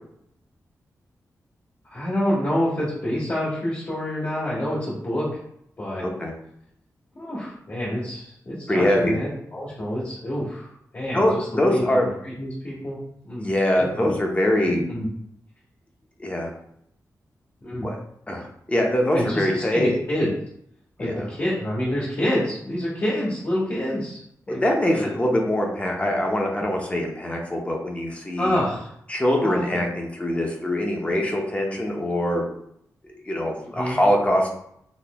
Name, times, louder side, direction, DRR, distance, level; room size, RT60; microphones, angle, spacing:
voice 1, 1.9-5.3 5.8-6.0 7.1-13.0 13.2-14.1 14.7-15.1 17.6-17.9 19.1-20.3 21.0-24.2 24.5-24.6 24.9-25.1 28.4-28.9 29.4-29.8 33.7-34.0, equal, 40° left, -8 dB, 1.3 m, -27 dB
voice 2, 6.0-6.3 8.7-9.2 11.1-12.0 13.4-14.8 16.2-16.5 17.8-18.0 18.3-20.0 21.0-21.3 24.5-28.6 29.1-32.4 33.0-34.5, left 1 dB, 20° left, 0 dB, 0.8 m, -23 dB
4.1 x 3.1 x 2.3 m, 0.71 s
wide cardioid pair, 95°, 6 cm